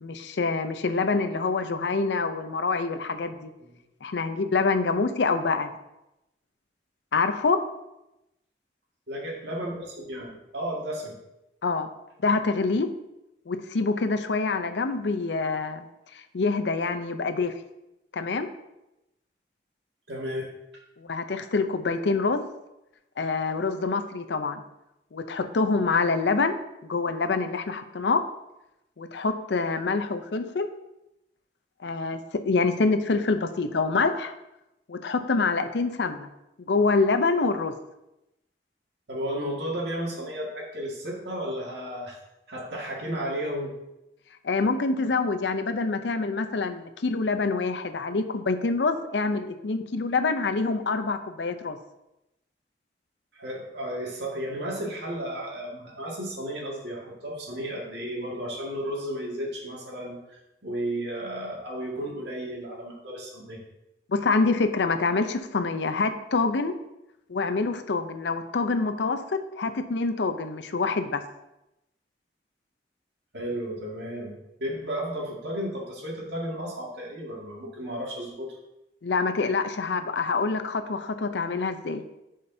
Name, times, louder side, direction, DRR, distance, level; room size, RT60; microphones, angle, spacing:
voice 1, 0.0-3.5 4.0-5.7 7.1-7.6 11.6-11.9 12.2-12.9 13.5-15.8 16.1-17.5 18.1-18.5 21.0-22.4 23.2-24.6 25.1-26.5 26.8-28.2 29.0-30.7 31.8-34.3 34.9-36.3 36.6-37.7 44.4-51.8 64.1-66.8 67.3-71.2 79.0-82.0, left 4 dB, 85° left, 9 dB, 0.6 m, -26 dB
voice 2, 9.1-11.2 20.1-20.5 39.1-42.2 42.5-43.7 53.3-63.6 73.3-78.6, equal, 80° right, -2 dB, 1.9 m, -33 dB
11.0 x 5.1 x 2.7 m, 0.91 s
head